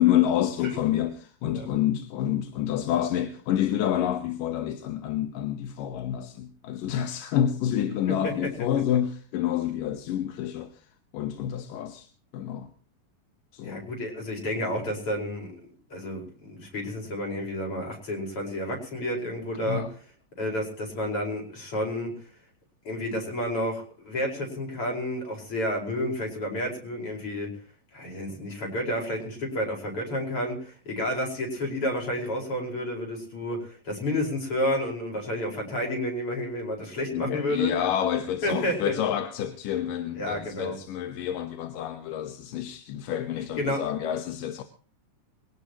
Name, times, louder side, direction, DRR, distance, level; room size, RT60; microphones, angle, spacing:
voice 1, 0.0-10.7 11.1-12.1 12.3-12.7 13.5-13.8 19.7-19.9 37.1-44.6, left 11 dB, 85° left, 2.8 m, -28 dB
voice 2, 13.6-19.9 20.4-22.1 22.8-27.5 27.9-37.7 38.4-38.9 40.2-40.8 43.6-43.8, left 1 dB, 40° left, 5.8 m, -30 dB
23.0 x 17.5 x 3.0 m
omnidirectional pair, 3.8 m